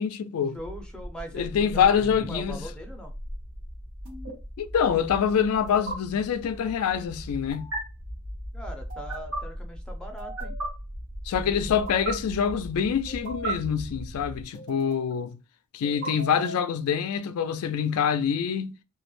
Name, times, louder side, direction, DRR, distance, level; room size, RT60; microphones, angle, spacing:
voice 1, 0.0-0.6 1.3-2.6 4.6-7.7 11.3-15.4 15.7-18.7, left 7 dB, 80° left, 0.3 m, -25 dB
voice 2, 0.5-3.1 8.5-10.6, equal, 5° left, 0.5 m, -41 dB
sound 1, 0.5-14.4, equal, 55° right, 0.6 m, -39 dB
sound 2, 2.0-2.3 4.0-4.3 5.7-5.9 7.5-7.8 8.9-9.4 10.2-10.7 11.7-12.1 13.1-13.5 14.5-15.1 15.8-16.7, right 3 dB, 80° right, 1.0 m, -35 dB
2.3 x 2.0 x 3.0 m
head